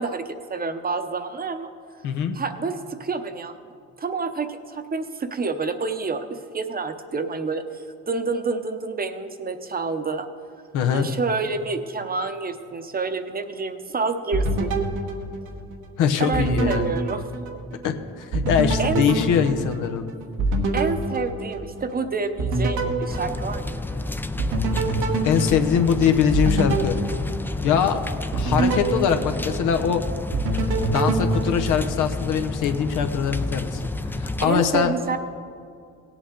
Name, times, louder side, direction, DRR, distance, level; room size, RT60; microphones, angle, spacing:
voice 1, 0.0-1.7 2.3-3.5 4.0-10.3 10.9-14.8 16.2-17.5 18.8-19.1 20.7-23.8 27.7-28.0 34.4-35.2, right 4 dB, 30° right, 9 dB, 0.8 m, -28 dB
voice 2, 2.0-2.3 10.7-11.1 16.0-16.9 17.8-20.1 25.2-27.0 27.6-28.0 28.4-30.0 30.9-33.8 34.1-34.9, left 7 dB, 90° left, 7 dB, 0.8 m, -22 dB
sound 1, 14.3-15.9 16.3-17.9 18.3-22.0 22.4-24.0 24.4-27.9 28.3-29.9 30.3-32.3, right 2 dB, 90° right, 1.3 m, -26 dB
sound 2, 23.1-34.5, left 2 dB, 5° left, 0.4 m, -30 dB
17.0 x 8.1 x 3.8 m, 2.3 s
cardioid pair, 90°, 30 cm